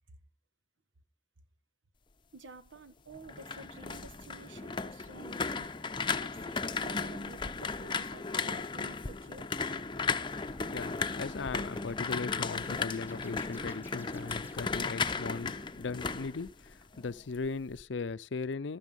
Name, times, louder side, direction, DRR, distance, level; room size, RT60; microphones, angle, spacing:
voice 1, 2.3-5.7 6.1-9.5, right 3 dB, 85° right, 1.4 m, -51 dB
sound 1, 3.1-17.1 17.4-17.8, left 4 dB, 25° left, 0.6 m, -35 dB
sound 2, 9.8-15.0, equal, 10° right, 1.9 m, -55 dB
voice 2, 10.7-18.8, left 4 dB, 75° left, 0.6 m, -38 dB
13.5 x 13.0 x 5.3 m
head